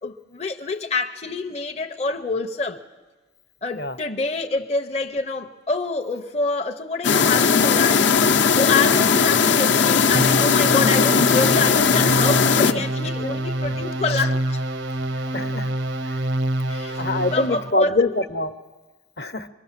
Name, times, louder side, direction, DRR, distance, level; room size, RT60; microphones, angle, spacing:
voice 1, 0.0-2.8 3.6-14.6 15.3-15.4 16.7-18.1, left 3 dB, 35° left, 0.7 m, -27 dB
sound 1, 7.0-12.7, left 6 dB, 80° left, 0.9 m, -18 dB
sound 2, 10.1-17.7, right 1 dB, 80° right, 0.9 m, -26 dB
voice 2, 15.3-15.7 17.0-18.5 19.2-19.5, left 2 dB, 60° left, 0.9 m, -24 dB
25.0 x 23.0 x 7.4 m
head